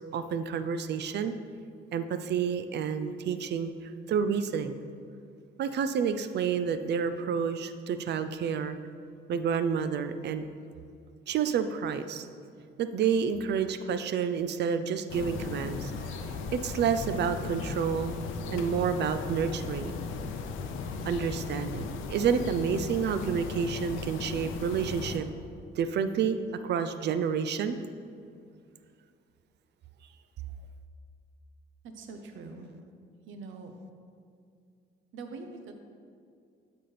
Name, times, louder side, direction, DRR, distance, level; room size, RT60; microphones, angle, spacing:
voice 1, 0.1-1.3 1.9-3.7 4.1-4.7 5.6-8.8 9.3-10.4 11.3-12.3 12.8-15.9 16.5-18.2 18.5-19.9 21.0-25.3 25.8-26.4 26.6-27.8, right 7 dB, 60° right, 10 dB, 0.4 m, -29 dB
sound 1, 15.1-25.2, left 4 dB, 90° left, 0.5 m, -37 dB
voice 2, 31.8-32.7 33.3-33.7 35.1-35.7, right 4 dB, 80° right, 5 dB, 0.8 m, -43 dB
11.5 x 4.2 x 3.3 m, 2.3 s
cardioid pair, 90°, 20 cm